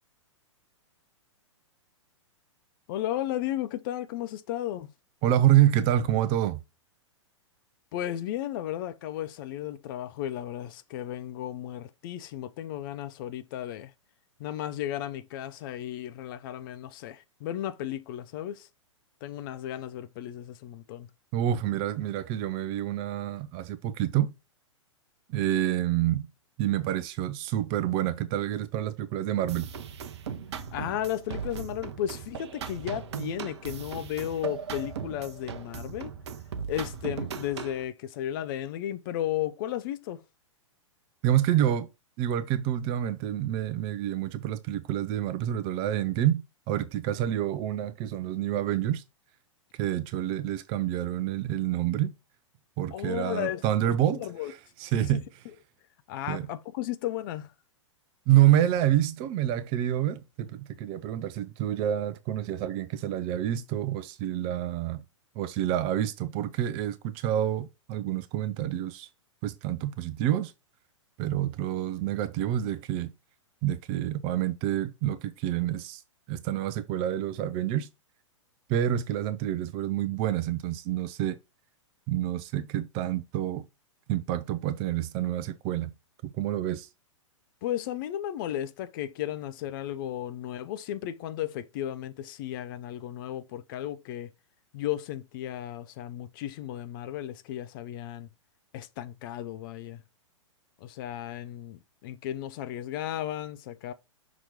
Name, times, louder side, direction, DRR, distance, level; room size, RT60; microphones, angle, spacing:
voice 1, 2.9-4.9 7.9-13.9 14.4-18.7 19.2-21.1 30.7-36.1 36.7-40.2 52.9-54.5 54.9-55.2 56.1-57.5 87.6-94.3 94.7-98.3 98.7-100.0 100.8-103.9, left 12 dB, 45° left, 0.7 m, -34 dB
voice 2, 5.2-6.6 21.3-24.3 25.3-26.3 26.6-29.7 41.2-41.9 42.2-49.0 49.7-52.1 52.8-54.2 54.8-55.2 56.3-56.5 58.3-65.0 65.4-69.1 69.4-70.5 71.2-73.1 73.6-76.0 76.3-77.9 78.7-81.4 82.1-83.7 84.1-85.9 86.2-86.9, right 12 dB, 35° right, 0.6 m, -27 dB
sound 1, 29.5-37.8, right 6 dB, 60° right, 0.8 m, -38 dB
6.1 x 3.0 x 5.2 m
figure-of-eight pair, 110°, 16 cm